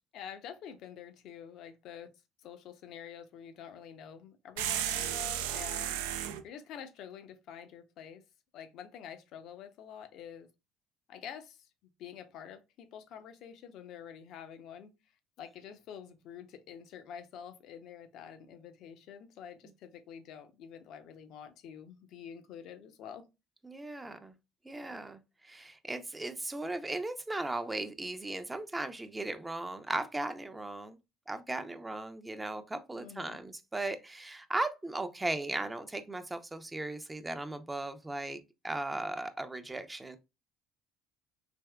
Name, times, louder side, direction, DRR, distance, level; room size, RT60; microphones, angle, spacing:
voice 1, 0.1-2.1 2.4-6.0 6.4-8.2 8.5-10.5 11.1-11.7 12.0-14.9 15.4-23.3 32.9-33.4, left 8 dB, 65° left, 0.5 m, -47 dB
sound 1, 4.6-6.4, right 11 dB, 85° right, 0.3 m, -33 dB
voice 2, 23.6-24.3 24.6-31.0 31.3-40.2, right 2 dB, 15° right, 0.5 m, -37 dB
3.4 x 2.7 x 2.2 m
supercardioid pair, 70°, 0 cm